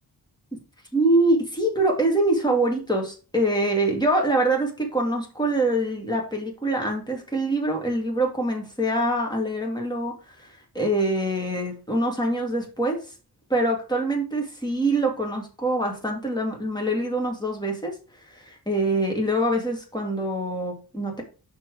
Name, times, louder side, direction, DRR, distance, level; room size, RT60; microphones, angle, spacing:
voice 1, 0.9-10.1 10.4-10.5 10.7-13.0 13.5-17.9 18.3-21.2, right 1 dB, 10° left, 0 dB, 2.4 m, -24 dB
6.0 x 4.6 x 4.8 m, 0.35 s
wide cardioid pair, 115°, 41 cm